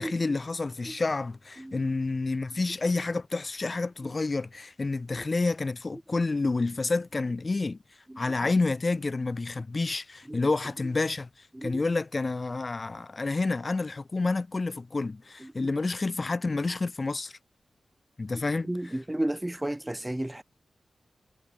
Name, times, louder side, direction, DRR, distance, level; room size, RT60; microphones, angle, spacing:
voice 1, 0.0-7.8 8.2-11.3 11.6-17.3 18.2-18.7, left 3 dB, 45° left, 2.8 m, -29 dB
voice 2, 1.6-1.9 4.0-4.1 5.1-5.2 8.1-8.5 10.3-10.4 11.5-11.8 15.4-15.7 18.6-20.4, right 1 dB, 15° right, 1.5 m, -34 dB
cardioid pair, 50°, 0 cm